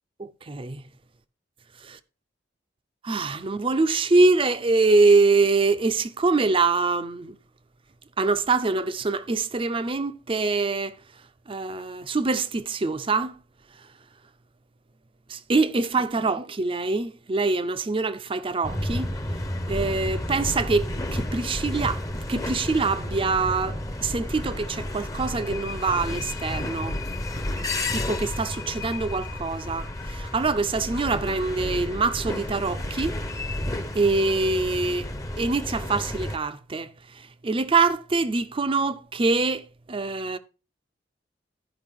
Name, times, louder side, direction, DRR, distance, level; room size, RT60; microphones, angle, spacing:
voice 1, 0.2-0.8 1.8-2.0 3.0-7.4 8.2-11.0 11.5-13.4 15.3-19.2 19.7-27.0 27.9-33.1 33.9-35.1 35.4-40.4, right 3 dB, 30° right, 0.5 m, -24 dB
sound 1, 18.6-36.4, left 1 dB, 20° left, 0.7 m, -31 dB
12.5 x 5.2 x 3.6 m
head